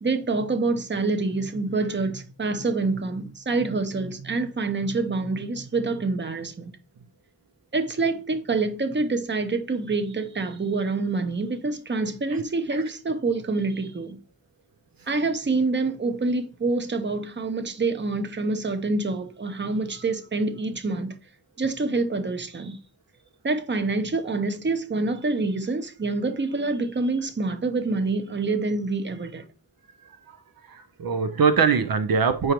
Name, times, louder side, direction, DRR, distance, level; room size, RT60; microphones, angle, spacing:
voice 1, 0.0-6.8 7.7-14.2 15.1-21.1 21.6-22.8 23.4-29.4, right 3 dB, 30° right, 0.8 m, -26 dB
voice 2, 30.0-32.5, right 5 dB, 65° right, 0.6 m, -23 dB
8.0 x 5.0 x 3.0 m
wide cardioid pair, 85°, 37 cm